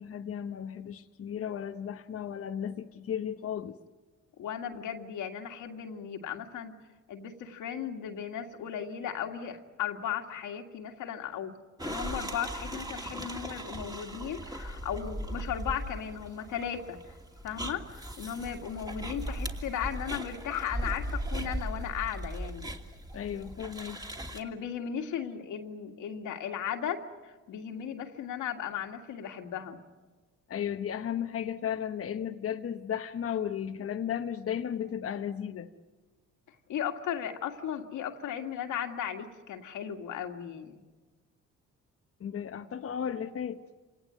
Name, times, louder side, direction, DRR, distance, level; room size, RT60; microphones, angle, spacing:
voice 1, 0.0-3.8 23.1-24.0 30.5-35.7 42.2-43.6, left 9 dB, 50° left, 5 dB, 1.0 m, -34 dB
voice 2, 4.4-6.8 7.1-11.6 11.8-17.0 17.4-22.7 24.3-29.8 36.7-40.8, left 9 dB, 85° left, 4 dB, 2.1 m, -36 dB
sound 1, 11.8-24.4, right 1 dB, 15° right, 2.8 m, -38 dB
27.5 x 18.5 x 9.3 m, 1.3 s
cardioid pair, 90°, 30 cm